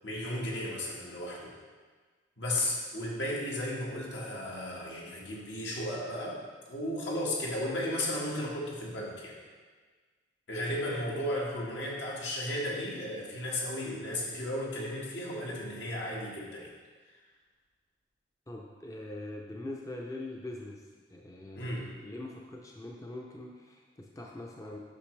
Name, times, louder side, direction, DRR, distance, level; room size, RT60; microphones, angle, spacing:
voice 1, 0.0-1.5 2.4-6.4 6.7-9.4 10.5-16.7 21.5-21.9, left 1 dB, 75° left, -4 dB, 1.7 m, -34 dB
voice 2, 18.5-21.7 22.0-24.8, left 1 dB, 20° left, -1 dB, 0.5 m, -43 dB
8.4 x 6.0 x 3.3 m, 1.5 s
head